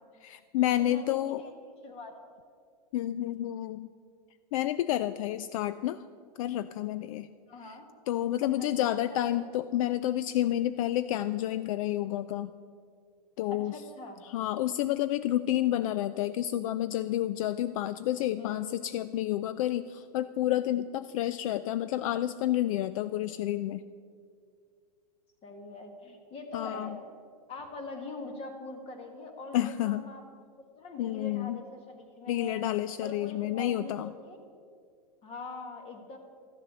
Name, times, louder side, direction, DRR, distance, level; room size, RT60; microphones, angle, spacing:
voice 1, 0.2-1.4 2.9-3.9 4.5-6.0 6.4-7.3 7.7-7.8 8.1-12.5 13.4-13.7 14.2-23.8 26.5-27.0 29.5-30.0 31.0-31.6 32.3-34.1, left 13 dB, 55° left, 13 dB, 0.4 m, -30 dB
voice 2, 0.8-1.5 1.8-2.1 7.5-7.8 8.6-8.7 9.1-9.4 13.5-14.2 18.4-18.7 25.4-27.0 27.5-30.2 30.8-32.6 33.0-34.4 35.2-36.2, left 2 dB, 30° left, 5 dB, 1.6 m, -43 dB
13.0 x 7.2 x 6.9 m, 2.2 s
hypercardioid pair, 135°, 21 cm